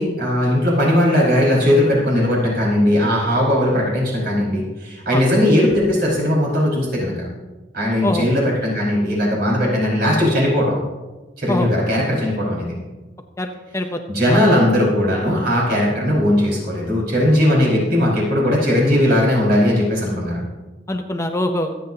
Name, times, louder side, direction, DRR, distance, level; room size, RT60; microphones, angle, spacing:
voice 1, 0.0-7.1 7.7-10.7 11.4-12.7 14.1-20.4, left 1 dB, 60° right, -4 dB, 5.2 m, -18 dB
voice 2, 13.4-14.0 14.3-14.4 20.9-21.7, left 1 dB, 15° left, 5 dB, 0.7 m, -23 dB
25.5 x 8.5 x 2.8 m, 1.2 s
head